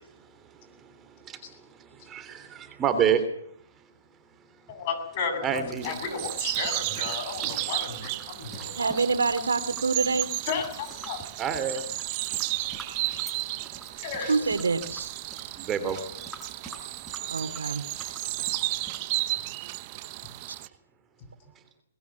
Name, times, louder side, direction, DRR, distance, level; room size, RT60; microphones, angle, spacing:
voice 1, 2.1-3.2 5.4-5.9 7.6-7.7 11.4-11.8 15.6-16.0, right 8 dB, 20° right, 9 dB, 3.1 m, -27 dB
voice 2, 4.7-9.0 10.5-11.2 12.0-12.1 14.0-14.4, left 6 dB, 40° left, 8 dB, 8.0 m, -34 dB
sound 1, 5.5-19.0, right 1 dB, ahead, 5.0 m, -48 dB
sound 2, 5.8-20.7, right 19 dB, 35° right, 1.1 m, -33 dB
voice 3, 8.8-10.3 14.3-15.1 17.3-17.8, right 4 dB, 90° right, 12 dB, 3.0 m, -26 dB
21.5 x 20.5 x 8.5 m, 0.67 s
hypercardioid pair, 145°, 0 cm